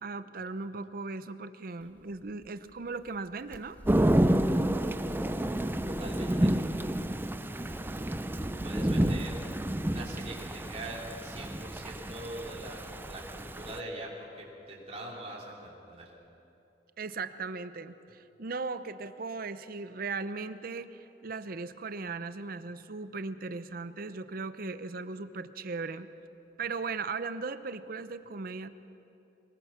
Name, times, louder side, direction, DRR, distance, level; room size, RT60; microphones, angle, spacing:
voice 1, 0.0-3.8 17.0-26.1 26.6-28.7, right 4 dB, 55° right, 12 dB, 0.7 m, -38 dB
sound 1, 1.8-8.5, equal, 10° left, 1.6 m, -53 dB
Thunder / Rain, 3.9-13.8, right 1 dB, 10° right, 0.5 m, -29 dB
voice 2, 5.9-6.6 7.6-9.4 9.8-16.1, right 1 dB, 35° right, -3 dB, 3.5 m, -43 dB
23.5 x 20.0 x 5.9 m, 2.9 s
head